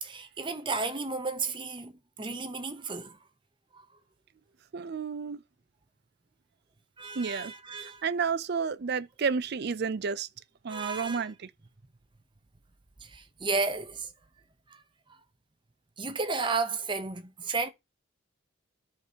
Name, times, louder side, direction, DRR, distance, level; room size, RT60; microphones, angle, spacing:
voice 1, 0.0-3.2 3.7-3.9 7.0-8.0 10.7-11.3 13.0-14.1 14.7-14.8 15.1-15.2 16.0-17.7, right 4 dB, 25° right, 0.8 m, -33 dB
voice 2, 4.7-5.4 7.1-7.5 8.0-10.3 10.6-11.5, right 5 dB, 55° right, 0.5 m, -31 dB
12.5 x 5.0 x 2.9 m
head